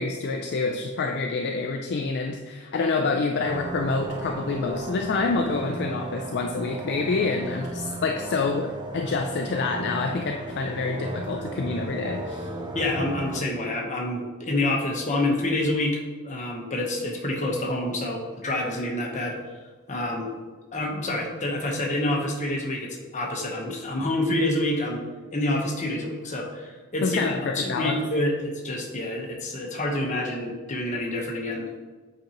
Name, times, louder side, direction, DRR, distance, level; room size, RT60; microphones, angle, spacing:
voice 1, 0.0-12.5 27.0-28.0, left 3 dB, 50° left, 4 dB, 0.4 m, -27 dB
sound 1, 3.4-13.4, right 2 dB, 20° right, 0.5 m, -35 dB
voice 2, 12.7-16.0 16.2-19.4 19.9-20.3 20.7-25.0 25.3-27.2 27.5-31.7, left 1 dB, 35° left, 0 dB, 1.0 m, -27 dB
7.8 x 5.1 x 3.0 m, 1.3 s
head